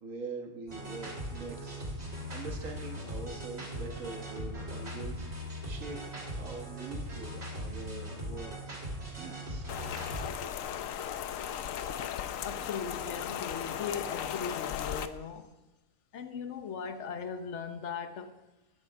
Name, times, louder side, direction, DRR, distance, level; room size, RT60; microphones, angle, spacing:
voice 1, 0.0-1.7 2.0-5.3 5.6-6.0 6.3-8.5 9.1-9.7, right 3 dB, 80° right, 3 dB, 1.8 m, -43 dB
sound 1, 0.7-10.3, equal, 55° right, 3.5 m, -39 dB
Rain, 9.7-15.1, left 9 dB, 85° left, 1.0 m, -36 dB
voice 2, 12.4-15.5 16.1-18.3, left 6 dB, 65° left, 9 dB, 1.2 m, -39 dB
13.0 x 10.5 x 3.6 m, 1.1 s
omnidirectional pair, 1.4 m